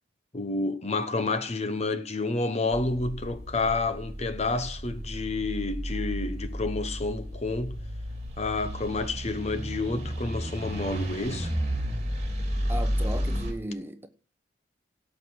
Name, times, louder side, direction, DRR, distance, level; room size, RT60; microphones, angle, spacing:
voice 1, 0.3-7.8 8.4-11.5, left 3 dB, 35° left, 0.9 m, -29 dB
sound 1, 2.7-13.5, equal, 35° right, 2.9 m, -32 dB
voice 2, 12.7-14.1, equal, 10° right, 1.0 m, -35 dB
17.0 x 6.5 x 6.4 m
head